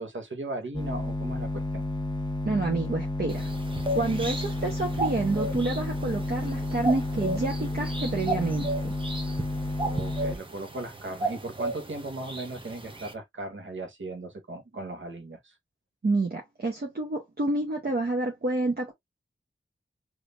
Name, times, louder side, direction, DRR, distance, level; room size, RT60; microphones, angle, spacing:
voice 1, 0.0-1.8 9.8-15.5, right 2 dB, 65° right, 1.2 m, -37 dB
sound 1, 0.7-10.4, left 2 dB, 20° left, 0.8 m, -31 dB
voice 2, 2.5-3.5 3.9-8.9 16.0-18.9, right 2 dB, 50° right, 1.0 m, -28 dB
sound 2, 3.3-13.1, right 2 dB, 25° right, 0.9 m, -35 dB
3.4 x 2.8 x 2.5 m
wide cardioid pair, 65°, 21 cm